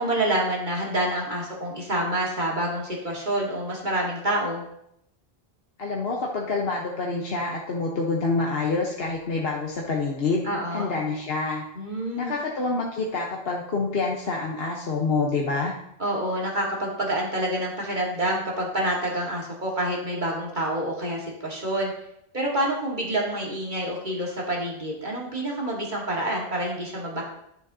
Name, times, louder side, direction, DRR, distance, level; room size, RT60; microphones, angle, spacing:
voice 1, 0.0-4.6 10.4-10.9 11.8-12.3 16.0-21.9 22.3-27.2, right 1 dB, 50° right, -3 dB, 1.9 m, -27 dB
voice 2, 5.8-11.6 12.2-15.7, left 3 dB, 70° left, -2 dB, 1.2 m, -27 dB
12.0 x 6.9 x 2.7 m, 0.75 s
omnidirectional pair, 1.1 m